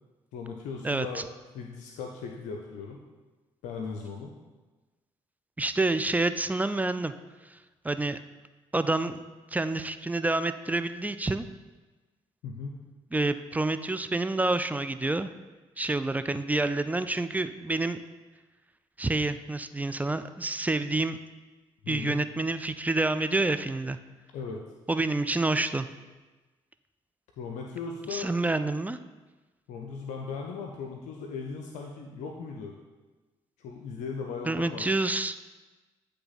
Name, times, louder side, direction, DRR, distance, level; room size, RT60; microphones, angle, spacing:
voice 1, 0.3-1.3 1.5-3.0 3.6-4.3 12.4-12.8 21.8-22.2 24.3-24.6 27.4-28.3 29.7-32.7 33.6-34.9, left 5 dB, 80° left, 2 dB, 0.6 m, -37 dB
voice 2, 0.8-1.2 5.6-7.1 7.5-7.6 7.8-8.2 8.7-11.5 13.1-15.3 15.8-18.0 19.0-21.2 21.9-24.0 24.9-25.9 28.1-29.0 34.5-35.4, right 2 dB, 10° right, 11 dB, 0.4 m, -28 dB
9.6 x 3.3 x 4.0 m, 1.2 s
supercardioid pair, 55°, 12 cm